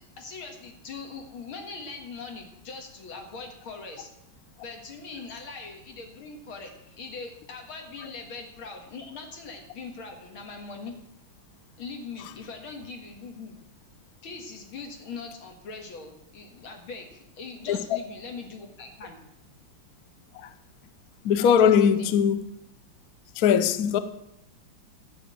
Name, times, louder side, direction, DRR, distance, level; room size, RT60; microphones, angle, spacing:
voice 1, 0.2-4.1 4.6-11.0 11.8-13.6 14.2-19.2 21.4-22.1, left 4 dB, 80° left, 2.7 m, -41 dB
voice 2, 17.7-18.0 20.3-20.5 21.2-22.4 23.4-24.0, left 8 dB, 65° left, 1.0 m, -21 dB
12.0 x 5.5 x 8.7 m
omnidirectional pair, 2.2 m